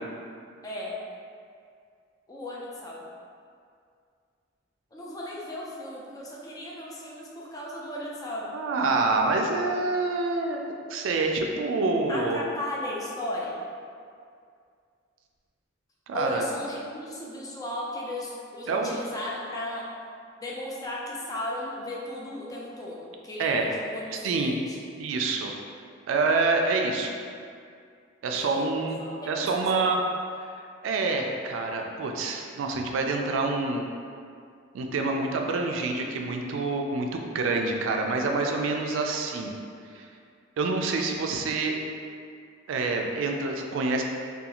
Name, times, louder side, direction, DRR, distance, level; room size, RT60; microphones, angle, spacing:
voice 1, 0.6-1.0 2.3-3.0 4.9-8.5 12.1-13.6 16.1-19.8 20.4-24.8 28.3-28.7 29.2-29.9, left 1 dB, 20° left, -4 dB, 0.4 m, -36 dB
voice 2, 8.5-12.4 16.1-16.5 18.7-19.0 23.4-23.7 24.2-24.6 25.0-25.5 26.1-27.1 28.2-29.0 29.2-30.0 30.8-33.8 34.7-39.5 39.9-40.1 40.6-41.7 42.7-44.0, right 3 dB, 85° right, 2 dB, 0.3 m, -27 dB
2.4 x 2.3 x 2.9 m, 2.3 s
head